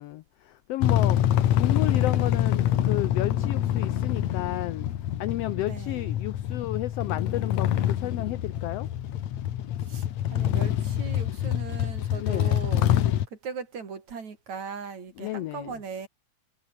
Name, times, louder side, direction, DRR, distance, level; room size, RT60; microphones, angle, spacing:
voice 1, 0.0-8.9 12.1-12.6 15.2-15.7, left 16 dB, 85° left, 1.4 m, -32 dB
sound 1, 0.8-13.3, left 11 dB, 70° left, 2.6 m, -26 dB
voice 2, 5.5-6.1 9.8-12.9 13.3-16.1, right 5 dB, 65° right, 5.0 m, -39 dB
omnidirectional pair, 3.5 m